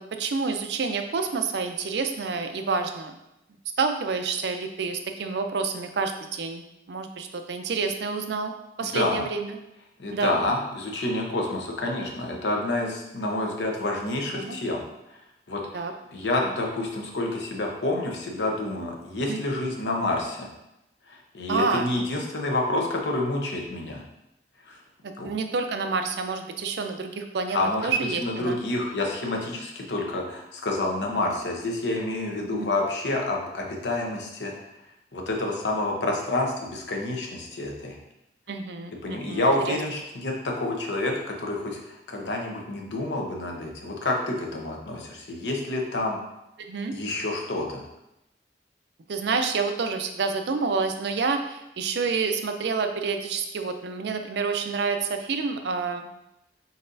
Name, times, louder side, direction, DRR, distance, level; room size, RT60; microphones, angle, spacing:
voice 1, 0.0-3.2 3.8-8.5 8.8-9.6 10.1-10.3 14.3-14.6 15.7-15.9 19.2-19.4 21.5-21.9 25.0-28.6 30.2-30.3 32.5-32.7 38.5-39.8 46.6-47.0 49.1-56.0, right 4 dB, 75° right, 7 dB, 0.4 m, -28 dB
voice 2, 8.8-9.3 10.0-14.8 15.1-15.2 15.5-15.8 16.1-20.5 21.1-24.0 24.7-24.8 25.2-25.3 27.5-27.9 28.2-34.5 35.1-38.0 39.0-46.2 46.9-47.8, left 2 dB, 85° left, 0 dB, 0.8 m, -28 dB
4.2 x 4.0 x 2.6 m, 0.88 s
head